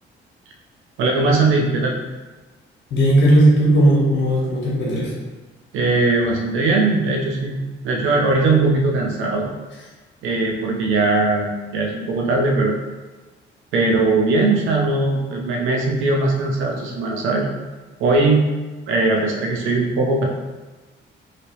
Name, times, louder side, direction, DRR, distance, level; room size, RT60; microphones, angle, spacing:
voice 1, 1.0-2.0 5.7-7.6 7.8-9.5 10.2-12.8 13.7-17.5 18.0-18.4 18.9-20.2, right 3 dB, 90° right, 0 dB, 0.7 m, -19 dB
voice 2, 2.9-5.1, right 1 dB, 65° left, -4 dB, 1.2 m, -16 dB
2.9 x 2.9 x 2.9 m, 1.2 s
cardioid pair, 90°, 20 cm